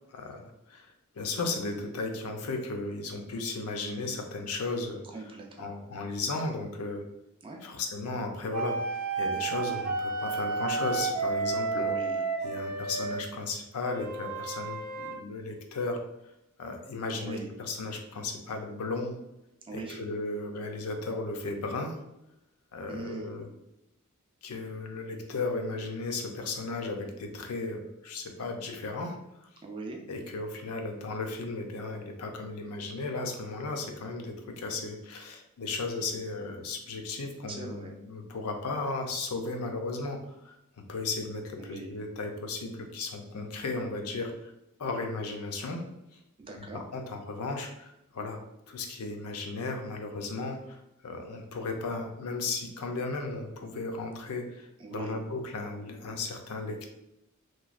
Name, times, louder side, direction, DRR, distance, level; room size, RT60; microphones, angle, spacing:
voice 1, 0.1-0.9 1.2-5.0 5.6-7.0 7.6-8.8 9.2-12.0 12.4-16.0 16.6-19.1 19.7-22.0 22.7-23.5 24.4-29.2 30.1-40.2 40.4-40.5 40.9-44.5 44.8-45.8 46.6-48.4 48.7-56.9, left 3 dB, 80° left, 4 dB, 0.5 m, -35 dB
voice 2, 5.0-5.7 7.4-7.6 11.8-12.3 17.1-17.5 19.6-20.0 22.9-23.3 29.6-30.0 37.5-37.9 41.6-41.9 46.4-46.8 54.8-55.2, right 3 dB, 25° right, 1 dB, 0.3 m, -41 dB
sound 1, 8.5-13.2 13.8-15.2, right 4 dB, 85° right, 0.5 m, -31 dB
3.0 x 2.2 x 2.4 m, 0.87 s
head